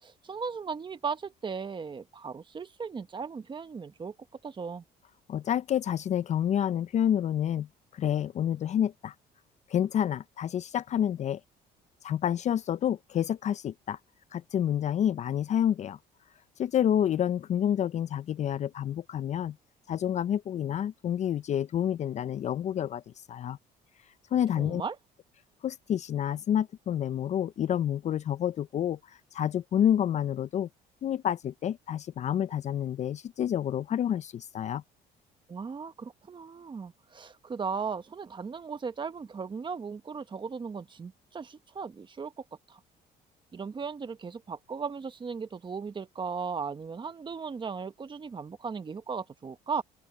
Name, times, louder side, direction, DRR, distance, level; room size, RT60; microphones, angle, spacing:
voice 1, 0.0-4.1 4.4-4.8 24.6-25.0 35.5-42.8 43.5-49.8, right 5 dB, 30° right, 1.2 m, -37 dB
voice 2, 5.3-7.7 7.9-9.1 9.7-11.4 12.0-14.0 14.3-16.0 16.6-19.6 19.9-23.0 23.3-23.6 24.3-24.8 25.6-30.7 31.0-34.8, left 10 dB, 45° left, 0.4 m, -28 dB
open air
cardioid pair, 110°, 17 cm